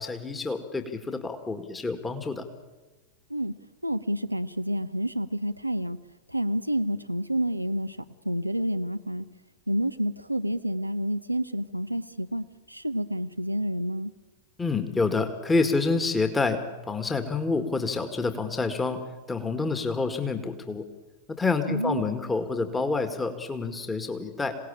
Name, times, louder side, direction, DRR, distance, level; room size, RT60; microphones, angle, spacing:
voice 1, 0.0-2.5 14.6-16.6 16.9-19.0 19.3-20.8 21.4-24.6, left 3 dB, 15° left, 7 dB, 2.0 m, -28 dB
voice 2, 3.8-6.0 6.3-9.3 9.7-14.1 21.7-22.0, equal, 90° right, 9 dB, 0.7 m, -29 dB
27.5 x 18.0 x 8.7 m, 1.2 s
figure-of-eight pair, 90°, 0 cm